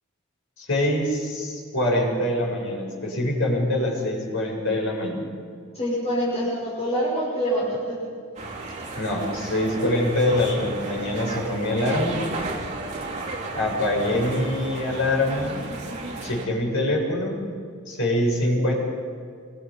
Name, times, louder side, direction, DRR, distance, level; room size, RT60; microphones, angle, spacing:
voice 1, 0.6-5.3 8.9-12.2 13.5-15.6 16.2-17.4 17.9-18.7, left 1 dB, 65° left, -2 dB, 6.9 m, -24 dB
voice 2, 5.7-8.0, equal, 30° left, -6 dB, 6.2 m, -25 dB
sound 1, 8.4-16.5, right 2 dB, 35° right, 3.0 m, -34 dB
27.0 x 22.5 x 5.6 m, 2.3 s
head